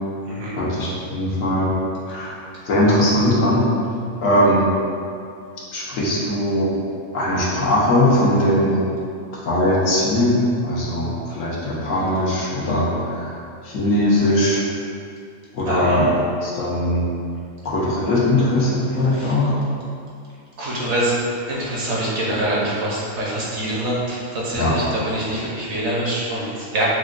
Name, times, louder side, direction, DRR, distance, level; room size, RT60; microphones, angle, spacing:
voice 1, 0.5-1.7 2.1-2.3 2.6-3.6 4.2-4.7 5.7-6.8 7.1-8.8 9.4-13.4 13.6-14.7 15.5-16.1 16.4-17.0 17.6-19.6 24.5-24.9, left 1 dB, 80° left, -7 dB, 1.3 m, -20 dB
voice 2, 15.7-16.1 19.1-19.3 20.6-21.2 21.5-26.8, right 1 dB, 65° right, -6 dB, 1.2 m, -25 dB
6.1 x 2.2 x 2.5 m, 2.5 s
omnidirectional pair, 1.3 m